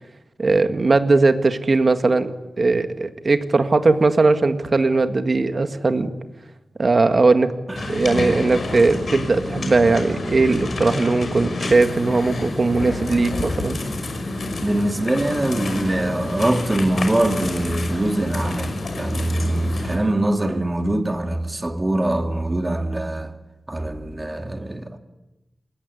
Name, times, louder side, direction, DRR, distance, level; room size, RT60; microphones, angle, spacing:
voice 1, 0.4-2.3 2.6-6.1 6.8-7.5 7.9-13.8, right 3 dB, 40° right, 1.8 m, -19 dB
sound 1, 7.8-20.0, left 2 dB, 55° left, 6.0 m, -29 dB
voice 2, 14.6-23.3 23.7-25.0, right 1 dB, 20° right, 2.4 m, -23 dB
27.5 x 21.0 x 9.8 m
wide cardioid pair, 160°, 0 cm